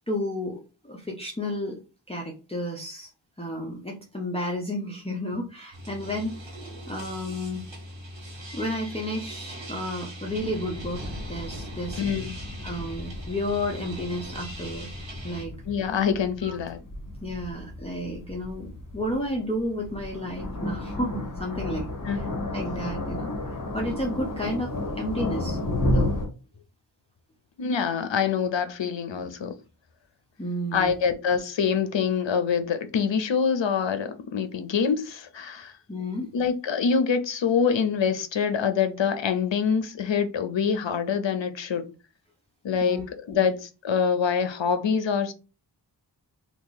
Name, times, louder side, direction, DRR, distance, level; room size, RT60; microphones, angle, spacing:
voice 1, 0.1-1.8 2.1-3.1 3.4-6.6 6.9-7.6 8.5-11.0 11.3-12.0 12.6-14.9 15.2-15.5 16.4-16.5 17.2-18.7 18.9-22.3 22.5-26.1 30.4-30.9 35.9-36.3 42.8-43.0 43.3-43.5, left 1 dB, 15° left, 0.6 m, -32 dB
sound 1, 5.7-15.5, right 1 dB, 70° right, 1.2 m, -40 dB
sound 2, 10.3-26.3, left 1 dB, 45° left, 1.0 m, -33 dB
voice 2, 12.0-12.3 15.7-16.8 22.0-22.2 27.6-29.5 30.7-35.7 36.3-41.8 42.6-43.0 43.3-45.3, left 6 dB, 70° left, 0.6 m, -25 dB
2.9 x 2.4 x 3.8 m
wide cardioid pair, 70°, 46 cm